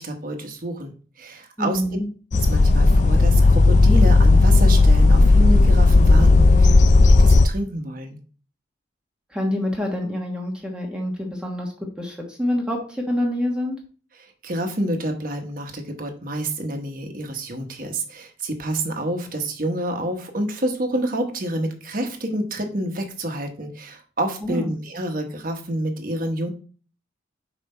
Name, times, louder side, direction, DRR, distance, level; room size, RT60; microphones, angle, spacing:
voice 1, 0.0-1.8 2.5-6.8 7.1-8.2 14.2-26.5, right 1 dB, 50° right, 4 dB, 1.2 m, -28 dB
voice 2, 1.6-2.1 9.3-11.7 12.0-13.8 24.4-24.7, left 1 dB, 5° right, -1 dB, 1.3 m, -26 dB
sound 1, 2.3-7.5, left 3 dB, 40° left, 0.4 m, -14 dB
5.5 x 5.1 x 4.4 m, 0.39 s
head